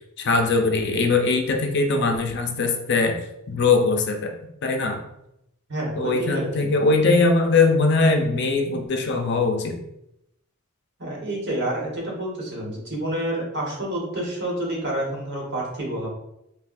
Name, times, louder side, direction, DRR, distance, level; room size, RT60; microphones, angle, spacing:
voice 1, 0.2-4.3 4.6-5.0 6.0-9.8, left 3 dB, 50° left, 3 dB, 0.5 m, -21 dB
voice 2, 5.7-6.7 11.0-16.1, right 1 dB, 50° right, -3 dB, 1.3 m, -28 dB
5.5 x 2.3 x 2.6 m, 0.83 s
head